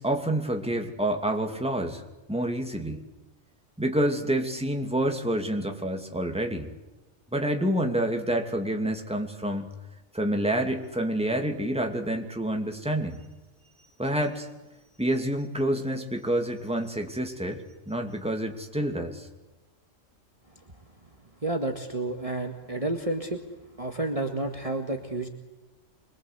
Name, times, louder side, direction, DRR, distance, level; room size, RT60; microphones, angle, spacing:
voice 1, 0.0-2.0 2.3-3.0 3.8-6.7 7.3-9.7 10.1-13.2 14.0-14.5 15.0-19.3, right 1 dB, 5° right, 4 dB, 2.5 m, -28 dB
voice 2, 21.4-23.4 23.8-25.3, right 2 dB, 25° right, 4 dB, 2.0 m, -30 dB
25.5 x 23.0 x 8.2 m, 1.0 s
omnidirectional pair, 1.3 m